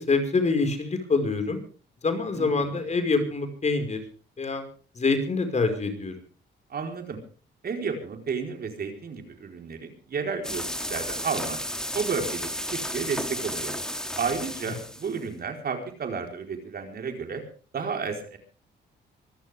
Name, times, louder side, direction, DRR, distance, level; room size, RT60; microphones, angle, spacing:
voice 1, 0.0-1.6 2.0-4.0 4.4-4.6 5.0-6.1, left 3 dB, 35° left, 7 dB, 5.4 m, -25 dB
voice 2, 2.3-2.8 6.7-7.2 7.6-11.6 11.9-13.7 14.2-17.4 17.7-18.4, right 5 dB, 50° right, 4 dB, 4.5 m, -32 dB
sound 1, 10.4-15.2, equal, 5° left, 2.7 m, -33 dB
25.0 x 14.5 x 3.6 m, 0.39 s
cardioid pair, 90°, 20 cm